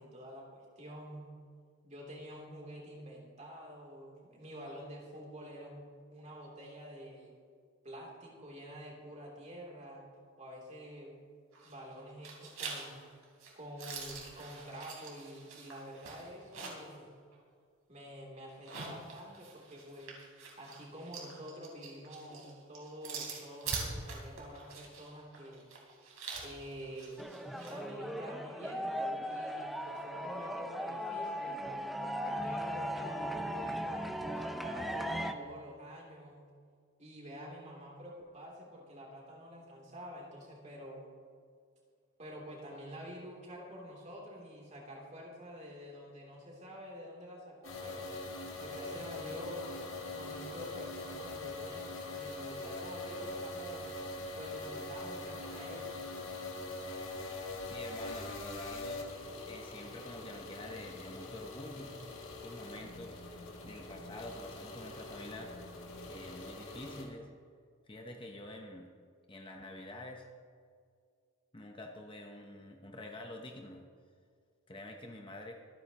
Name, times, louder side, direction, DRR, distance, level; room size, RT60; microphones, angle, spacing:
voice 1, 0.0-1.3 1.8-7.3 7.8-10.1 10.4-11.1 11.6-13.0 13.5-17.1 17.9-25.7 26.4-27.2 27.7-31.6 32.2-36.5 37.0-41.1 42.2-48.1 48.6-53.9 54.4-56.0, equal, 35° right, -2 dB, 3.1 m, -48 dB
sound 1, 11.5-11.9 12.2-16.9 17.3-17.4 18.5-27.8, right 4 dB, 75° right, 3.5 m, -44 dB
sound 2, 27.2-35.3, equal, ahead, 0.6 m, -38 dB
sound 3, 47.6-67.0, left 2 dB, 65° left, 2.6 m, -43 dB
voice 2, 57.7-59.1 59.4-61.9 62.4-63.2 63.6-65.5 66.1-67.3 67.8-68.9 69.3-70.3 71.5-73.8 74.7-75.5, left 1 dB, 25° left, 2 dB, 0.9 m, -47 dB
24.5 x 9.7 x 3.0 m, 2.1 s
head